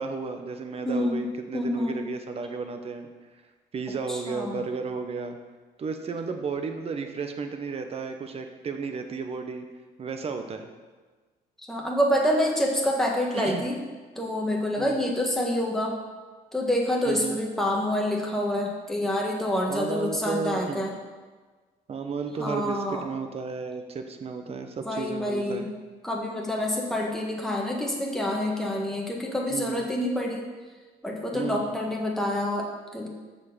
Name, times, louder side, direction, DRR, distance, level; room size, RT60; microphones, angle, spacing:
voice 1, 0.0-3.1 3.7-5.4 5.8-9.6 10.0-10.7 13.3-13.6 14.8-15.0 17.1-17.4 19.7-20.8 21.9-25.7 29.5-29.9 31.3-31.7, right 5 dB, 35° right, 6 dB, 0.8 m, -33 dB
voice 2, 0.8-2.0 4.1-4.6 11.7-13.8 14.1-16.0 16.5-20.9 22.4-23.0 24.8-25.7 26.0-30.5 31.0-33.1, left 1 dB, ahead, -2 dB, 1.5 m, -27 dB
7.0 x 4.4 x 6.6 m, 1.4 s
cardioid pair, 110°, 17 cm